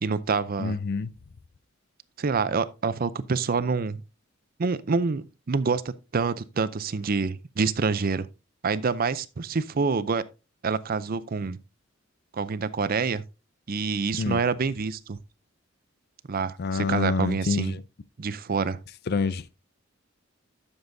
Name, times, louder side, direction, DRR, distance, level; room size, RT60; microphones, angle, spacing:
voice 1, 0.0-0.8 2.2-4.0 4.6-8.3 8.6-10.2 10.6-11.6 12.3-13.2 13.7-15.2 16.3-17.7 18.2-18.8, right 4 dB, 45° right, 0.5 m, -27 dB
voice 2, 0.6-1.1 14.2-14.4 16.6-17.8 19.1-19.4, left 4 dB, 50° left, 0.5 m, -26 dB
11.5 x 7.1 x 2.7 m
head